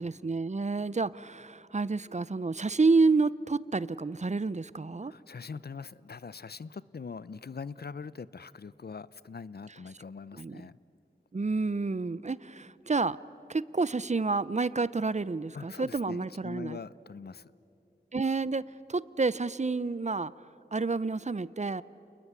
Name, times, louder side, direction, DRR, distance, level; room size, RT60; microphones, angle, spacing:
voice 1, 0.0-5.1 10.4-10.6 11.3-13.2 13.5-16.8 18.1-18.6 18.9-20.3 20.7-21.8, right 3 dB, 40° right, 19 dB, 0.6 m, -29 dB
voice 2, 5.0-10.8 15.5-17.5, left 5 dB, 65° left, 18 dB, 0.6 m, -42 dB
29.0 x 20.5 x 9.6 m, 2.8 s
wide cardioid pair, 45°, 18 cm